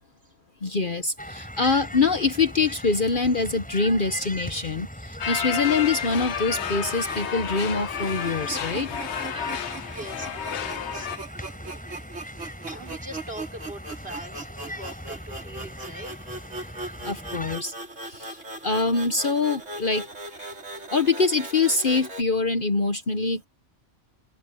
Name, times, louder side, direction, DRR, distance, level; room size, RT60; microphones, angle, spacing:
voice 1, 0.6-8.9 17.0-17.7 18.1-18.3 18.6-20.1 20.4-20.5 20.9-23.5, left 4 dB, 45° left, 1.1 m, -24 dB
sound 1, 1.2-17.6, equal, 5° left, 6.9 m, -40 dB
sound 2, 5.2-11.2, left 8 dB, 65° left, 1.1 m, -31 dB
sound 3, 7.9-22.2, right 2 dB, 70° right, 3.9 m, -39 dB
voice 2, 9.8-12.2 12.7-16.2 17.0-17.1, right 1 dB, 50° right, 5.7 m, -42 dB
omnidirectional pair, 1.3 m